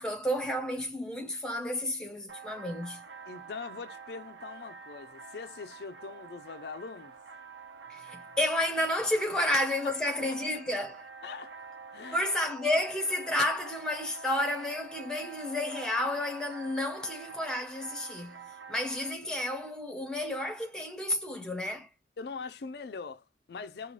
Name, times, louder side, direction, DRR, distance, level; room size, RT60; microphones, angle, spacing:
voice 1, 0.0-3.0 7.9-11.0 12.1-21.9, left 1 dB, 5° left, 1.0 m, -31 dB
sound 1, 2.3-19.1, right 5 dB, 85° right, 0.8 m, -47 dB
voice 2, 3.3-7.1 9.4-9.5 9.8-10.2 11.2-11.6 11.9-12.2 22.2-23.9, left 5 dB, 65° left, 0.4 m, -42 dB
5.1 x 2.3 x 3.1 m
head